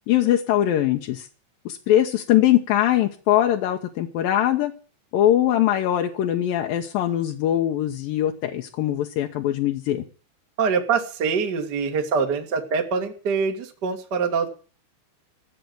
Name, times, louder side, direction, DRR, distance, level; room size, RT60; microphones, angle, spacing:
voice 1, 0.1-1.3 1.7-4.7 5.1-10.0, left 12 dB, 75° left, 2 dB, 2.2 m, -21 dB
voice 2, 10.6-14.5, right 5 dB, 45° right, 3 dB, 1.4 m, -24 dB
15.0 x 7.7 x 9.4 m, 0.39 s
omnidirectional pair, 5.3 m